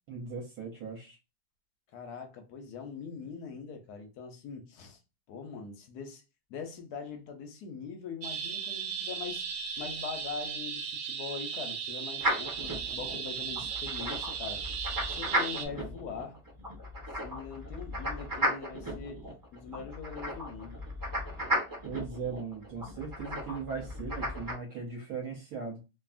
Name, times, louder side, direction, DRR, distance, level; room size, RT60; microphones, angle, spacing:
voice 1, 0.1-1.2 21.8-25.8, right 5 dB, 65° right, 1.1 m, -38 dB
voice 2, 1.9-5.0 5.3-6.2 6.5-9.4 9.8-14.6 15.0-16.4 17.2-19.2 19.5-20.8, left 6 dB, 70° left, 1.0 m, -42 dB
sound 1, 8.2-15.7, right 7 dB, 85° right, 1.3 m, -36 dB
sound 2, 12.2-24.5, equal, 20° right, 0.6 m, -35 dB
2.8 x 2.5 x 2.4 m
omnidirectional pair, 2.0 m